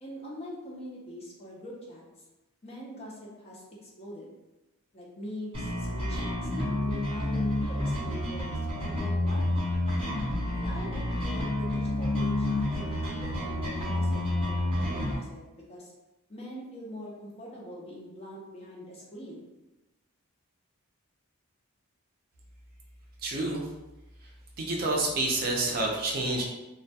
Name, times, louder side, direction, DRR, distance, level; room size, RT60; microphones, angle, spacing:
voice 1, 0.0-2.0 2.6-4.3 4.9-9.8 10.5-15.9 16.3-19.5, equal, 30° left, -3 dB, 0.5 m, -43 dB
sound 1, 5.5-15.1, left 1 dB, 25° right, 0.9 m, -29 dB
voice 2, 23.2-23.7 24.6-26.4, right 2 dB, 40° right, -1 dB, 0.4 m, -28 dB
2.2 x 2.1 x 2.7 m, 1.0 s
head